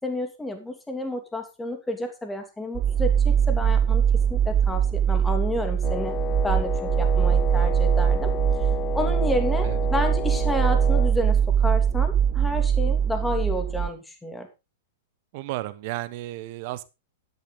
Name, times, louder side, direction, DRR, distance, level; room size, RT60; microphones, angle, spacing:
voice 1, 0.0-4.0 4.3-8.3 8.9-14.5, left 1 dB, 10° left, 5 dB, 2.8 m, -30 dB
sound 1, 2.7-13.9, right 8 dB, 25° right, 0.9 m, -22 dB
Wind instrument woodwind instrument, 5.8-11.2, left 9 dB, 25° left, 0.7 m, -32 dB
voice 2, 15.3-16.8, right 17 dB, 45° right, 15 dB, 1.2 m, -33 dB
12.0 x 11.0 x 3.9 m, 0.27 s
figure-of-eight pair, 100°, 0 cm